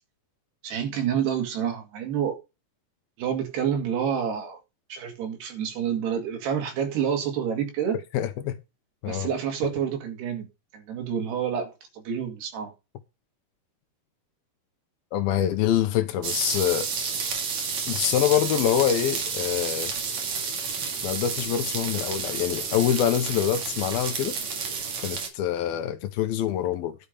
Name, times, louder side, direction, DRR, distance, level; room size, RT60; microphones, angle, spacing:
voice 1, 0.6-2.4 3.2-4.6 4.9-8.0 9.1-10.5 10.7-12.7, right 8 dB, 75° right, 4.1 m, -28 dB
voice 2, 8.1-8.6 9.0-9.3 15.1-16.9 17.9-19.9 21.0-24.4 25.0-27.0, left 10 dB, 75° left, 2.6 m, -25 dB
sound 1, 16.2-25.3, right 5 dB, 50° right, 3.1 m, -30 dB
11.5 x 6.8 x 5.2 m
omnidirectional pair, 4.7 m